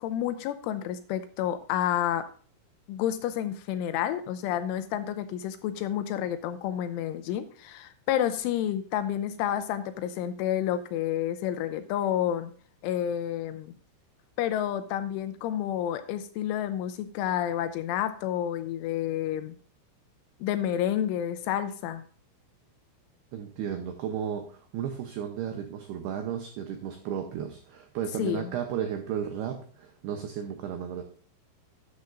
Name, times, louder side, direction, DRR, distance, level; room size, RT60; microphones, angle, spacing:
voice 1, 0.0-2.2 2.9-12.5 12.8-13.7 14.4-19.6 20.4-22.0 28.2-28.5, left 11 dB, 80° left, 10 dB, 2.9 m, -30 dB
voice 2, 23.3-31.0, right 8 dB, 85° right, 5 dB, 2.3 m, -34 dB
13.0 x 9.6 x 2.5 m, 0.43 s
omnidirectional pair, 5.8 m